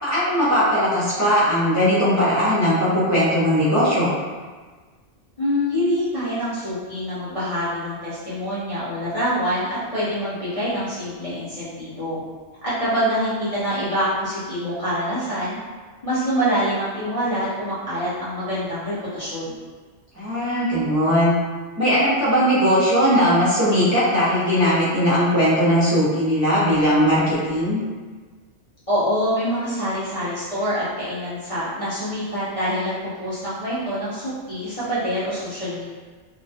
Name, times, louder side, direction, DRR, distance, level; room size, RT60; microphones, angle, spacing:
voice 1, 0.0-4.1 20.2-21.3 21.8-27.8, equal, 20° right, -11 dB, 0.5 m, -19 dB
voice 2, 5.4-12.2 12.6-15.6 16.0-19.6 28.9-35.9, equal, 40° left, -12 dB, 0.5 m, -25 dB
2.2 x 2.2 x 2.6 m, 1.4 s
omnidirectional pair, 1.2 m